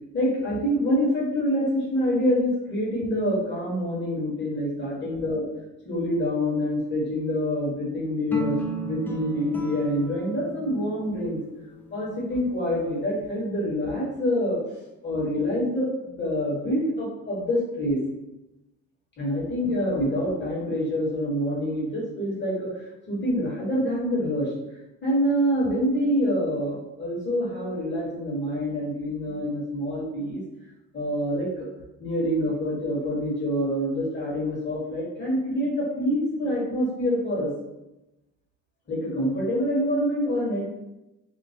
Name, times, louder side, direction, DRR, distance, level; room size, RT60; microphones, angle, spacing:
voice 1, 0.1-5.4 5.8-11.4 11.9-14.6 15.0-18.0 19.2-22.7 23.1-24.5 25.0-30.4 30.9-31.7 32.0-37.5 38.9-40.6, equal, 35° left, -5 dB, 1.5 m, -26 dB
sound 1, 8.3-12.7, right 1 dB, 5° left, 0.3 m, -36 dB
2.9 x 2.1 x 2.7 m, 0.95 s
supercardioid pair, 90°, 31 cm